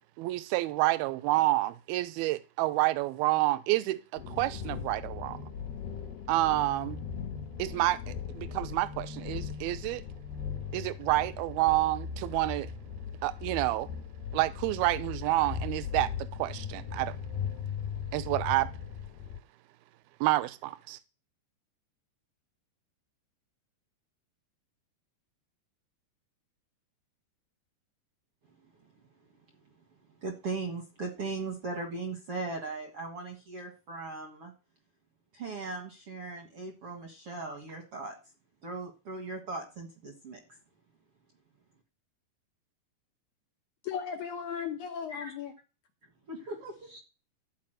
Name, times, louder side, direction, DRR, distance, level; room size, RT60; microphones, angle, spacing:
voice 1, 0.2-5.4 6.3-7.0 7.6-10.0 10.7-12.7 13.2-13.9 14.3-17.2 18.1-18.7 20.2-21.0, right 18 dB, 80° right, 2.3 m, -29 dB
sound 1, 4.2-19.4, left 7 dB, 70° left, 2.8 m, -38 dB
voice 2, 30.2-34.5 35.3-38.2 38.6-40.4 45.1-45.3 46.3-47.0, right 3 dB, 60° right, 1.5 m, -38 dB
voice 3, 43.8-45.5, left 7 dB, 85° left, 1.7 m, -36 dB
14.0 x 5.0 x 7.7 m
omnidirectional pair, 5.1 m